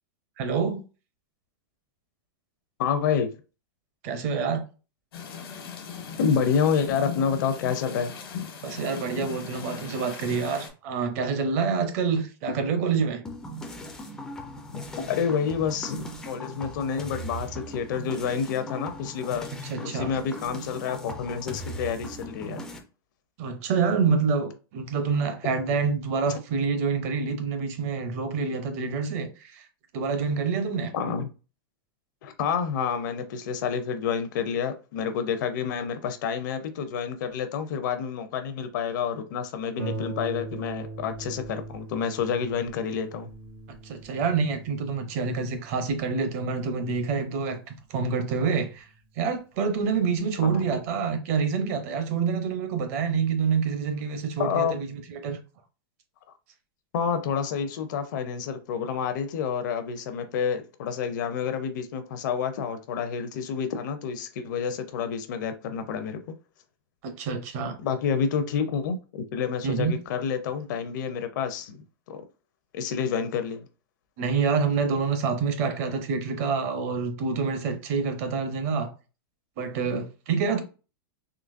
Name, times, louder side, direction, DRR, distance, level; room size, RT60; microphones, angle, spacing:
voice 1, 0.4-0.8 4.0-4.6 8.6-13.2 19.7-20.1 23.4-29.6 29.9-30.9 43.8-48.9 49.2-55.4 67.0-67.8 69.6-69.9 74.2-78.9 79.6-80.6, right 5 dB, 40° right, 0.6 m, -27 dB
voice 2, 2.8-3.3 6.2-8.1 14.7-19.5 19.8-22.6 30.9-31.3 32.2-43.3 50.4-50.6 54.4-54.8 56.9-66.3 67.8-71.8 72.1-72.2 72.7-73.6, left 7 dB, 55° left, 0.5 m, -28 dB
sound 1, 5.1-10.7, left 7 dB, 85° left, 1.2 m, -38 dB
sound 2, 13.2-22.8, equal, 5° left, 0.3 m, -39 dB
Harp, 39.8-49.0 49.8-49.9 50.4-50.5, right 3 dB, 75° right, 0.9 m, -41 dB
3.8 x 2.8 x 2.5 m
supercardioid pair, 170°, 12 cm